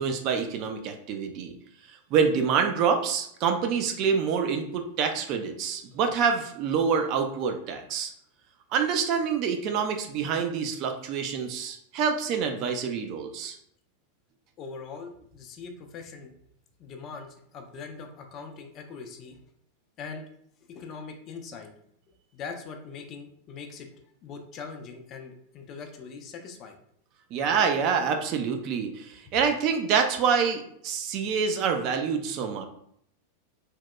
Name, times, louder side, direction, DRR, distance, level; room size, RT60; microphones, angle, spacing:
voice 1, 0.0-1.5 2.1-8.1 8.7-13.6 27.3-32.7, right 6 dB, 40° right, 5 dB, 0.3 m, -26 dB
voice 2, 14.6-16.3 16.8-19.4 20.0-20.2 20.7-21.7 22.3-26.8, left 5 dB, 35° left, 4 dB, 0.4 m, -41 dB
2.8 x 2.1 x 2.2 m, 0.69 s
figure-of-eight pair, 90°, 0 cm